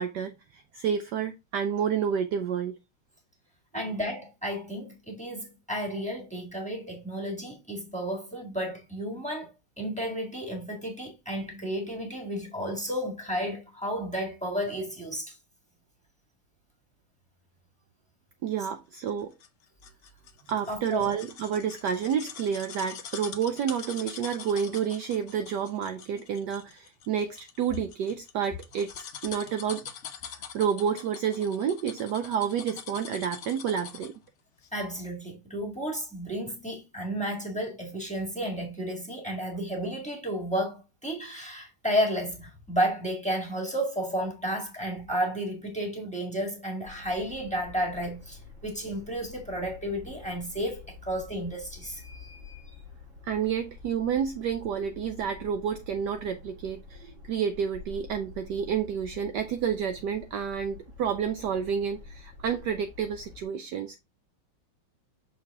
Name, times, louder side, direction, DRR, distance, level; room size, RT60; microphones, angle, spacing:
voice 1, 0.0-2.8 3.7-3.9 18.4-19.3 20.5-29.9 30.3-34.2 53.2-64.0, right 8 dB, 75° right, 1.0 m, -30 dB
voice 2, 3.7-9.5 9.8-15.4 20.7-21.1 34.7-52.6, equal, 5° left, 1.6 m, -32 dB
sound 1, 19.1-34.3 34.6-34.7, left 7 dB, 70° left, 0.7 m, -44 dB
sound 2, 46.8-63.4, left 4 dB, 40° right, 1.6 m, -48 dB
6.3 x 4.3 x 3.5 m
omnidirectional pair, 2.3 m